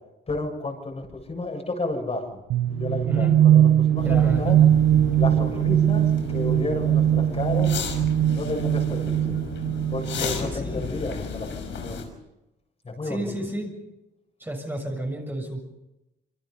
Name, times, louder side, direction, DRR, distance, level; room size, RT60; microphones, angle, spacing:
voice 1, 0.3-2.4 2.7-4.6 5.1-7.8 8.3-9.4 9.9-11.5 11.8-12.0 12.8-13.3, left 2 dB, 30° left, 2 dB, 7.5 m, -31 dB
sound 1, 2.5-10.3, right 11 dB, 85° right, 0.9 m, -21 dB
voice 2, 3.0-3.4 4.0-4.5 10.2-10.9 13.0-13.7 14.4-15.6, right 1 dB, 10° right, 2 dB, 6.9 m, -31 dB
sound 2, 4.0-12.0, left 5 dB, 70° left, 5.7 m, -34 dB
26.5 x 23.5 x 5.6 m, 0.95 s
cardioid pair, 90°, 20 cm